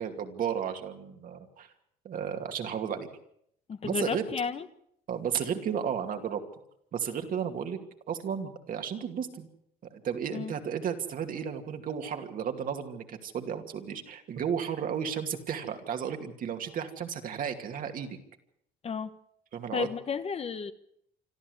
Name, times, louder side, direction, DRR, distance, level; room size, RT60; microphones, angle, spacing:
voice 1, 0.0-1.7 2.0-3.1 3.8-4.3 5.1-6.4 6.9-7.8 8.1-9.5 9.9-18.2 19.5-19.9, right 8 dB, 55° right, 5 dB, 2.5 m, -33 dB
voice 2, 3.7-4.7 10.3-10.5 18.8-19.1 19.7-20.7, left 6 dB, 35° left, 11 dB, 1.2 m, -32 dB
26.5 x 13.0 x 8.1 m, 0.72 s
cardioid pair, 110°, 17 cm